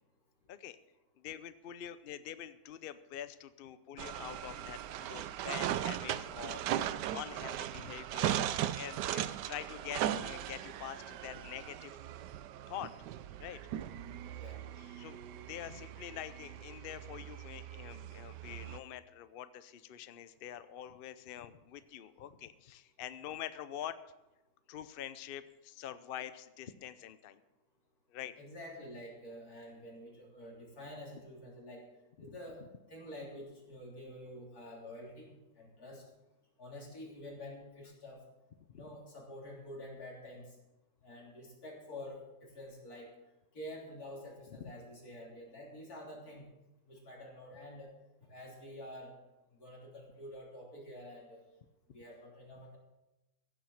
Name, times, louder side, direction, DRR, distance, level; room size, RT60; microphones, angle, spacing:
voice 1, 1.2-12.0 12.7-12.9 13.4-13.6 13.9-14.2 14.8-15.2 15.5-24.0 24.7-27.4 28.1-28.3 32.2-32.4 38.7-38.8 51.9-52.0, left 10 dB, 80° left, 13 dB, 0.5 m, -46 dB
sound 1, 4.0-18.8, right 11 dB, 80° right, 1.2 m, -38 dB
voice 2, 28.4-31.8 32.2-32.6 32.9-36.0 36.6-38.2 38.7-40.6 41.0-43.1 43.5-46.5 46.9-47.9 48.2-49.1 49.5-51.4 51.9-52.8, left 1 dB, 60° left, -2 dB, 3.9 m, -48 dB
15.5 x 7.4 x 7.1 m, 1.0 s
omnidirectional pair, 1.9 m